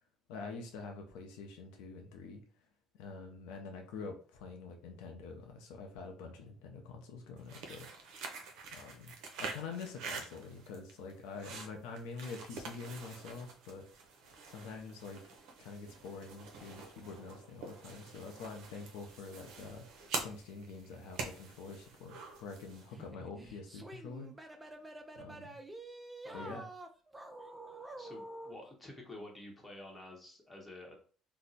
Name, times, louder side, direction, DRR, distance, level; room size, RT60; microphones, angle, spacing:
voice 1, 0.3-2.4 3.0-7.9 8.7-13.9 14.5-15.2 15.6-24.3 25.2-25.6 26.3-26.6, left 4 dB, 85° left, 2 dB, 0.6 m, -46 dB
sound 1, 7.4-23.0, right 4 dB, 75° right, 0.6 m, -46 dB
sound 2, 22.9-28.6, right 1 dB, 15° right, 0.5 m, -48 dB
voice 2, 26.2-26.7 28.0-31.0, left 1 dB, 10° left, 0 dB, 1.0 m, -50 dB
2.7 x 2.1 x 4.0 m, 0.42 s
supercardioid pair, 95°, 0 cm